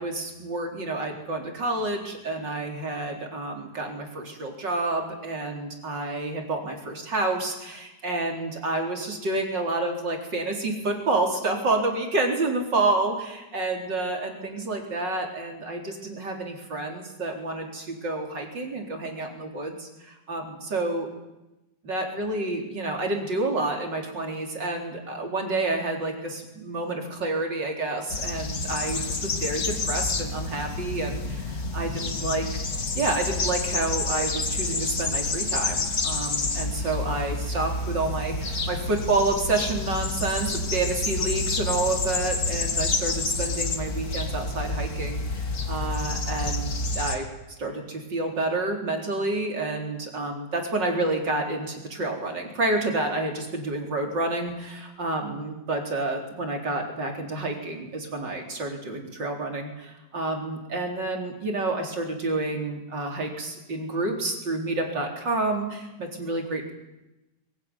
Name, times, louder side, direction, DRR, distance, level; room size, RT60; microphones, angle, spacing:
voice 1, 0.0-21.1 21.8-32.5 32.9-47.3 47.6-66.7, right 2 dB, 80° right, 2 dB, 4.7 m, -29 dB
sound 1, 28.1-47.2, left 3 dB, 55° left, 2.6 m, -29 dB
22.0 x 19.5 x 9.8 m, 0.97 s
omnidirectional pair, 1.9 m